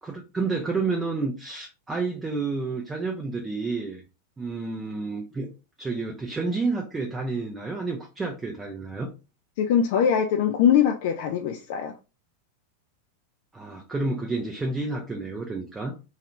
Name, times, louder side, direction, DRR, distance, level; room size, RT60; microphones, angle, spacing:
voice 1, 0.0-4.0 4.4-9.1 13.5-16.0, right 3 dB, 15° right, 0.5 m, -30 dB
voice 2, 9.6-11.9, left 8 dB, 50° left, 0.3 m, -22 dB
3.1 x 2.3 x 3.0 m
figure-of-eight pair, 90°, 0 cm